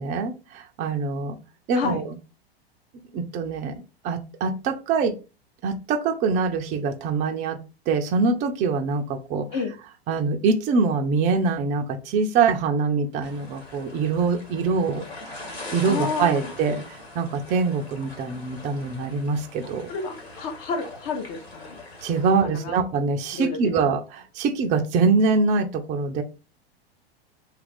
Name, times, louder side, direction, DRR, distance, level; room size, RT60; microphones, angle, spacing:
voice 1, 0.0-1.4 1.7-2.0 3.1-5.2 5.6-7.6 7.9-9.5 10.1-15.0 15.3-15.4 15.7-19.9 22.0-26.2, right 4 dB, 25° right, 4 dB, 0.4 m, -24 dB
sound 1, 13.2-22.3, left 2 dB, 85° left, 1.4 m, -41 dB
voice 2, 15.9-16.5 19.9-21.8 22.4-22.8 23.3-23.6, left 5 dB, 40° left, 6 dB, 0.6 m, -30 dB
2.8 x 2.4 x 3.3 m, 0.30 s
figure-of-eight pair, 95°, 31 cm